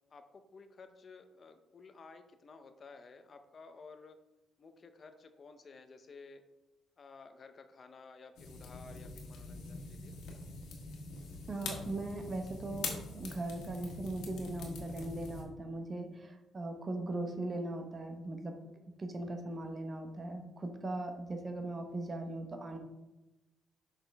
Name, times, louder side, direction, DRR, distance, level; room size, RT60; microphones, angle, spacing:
voice 1, 0.1-4.2 4.6-6.4 7.0-10.1, left 4 dB, 45° left, 8 dB, 0.7 m, -54 dB
sound 1, 8.4-15.4, left 3 dB, 80° left, 1.5 m, -44 dB
voice 2, 11.5-18.5 19.0-22.8, right 2 dB, 35° right, 5 dB, 1.1 m, -39 dB
6.5 x 5.8 x 3.4 m, 0.98 s
cardioid pair, 90°, 0 cm